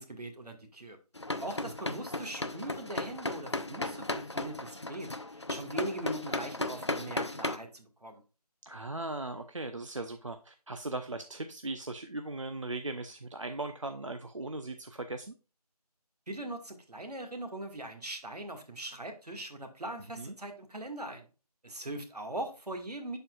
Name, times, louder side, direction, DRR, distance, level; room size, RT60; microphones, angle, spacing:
voice 1, 0.1-1.0 1.4-8.2 16.3-21.3 21.6-23.2, right 1 dB, 70° right, 5 dB, 1.8 m, -40 dB
sound 1, 1.2-7.6, left 2 dB, 45° left, 0.5 m, -36 dB
voice 2, 8.7-15.3 20.2-20.3, right 2 dB, 50° right, 8 dB, 0.5 m, -38 dB
11.0 x 4.4 x 2.3 m, 0.33 s
figure-of-eight pair, 175°, 21 cm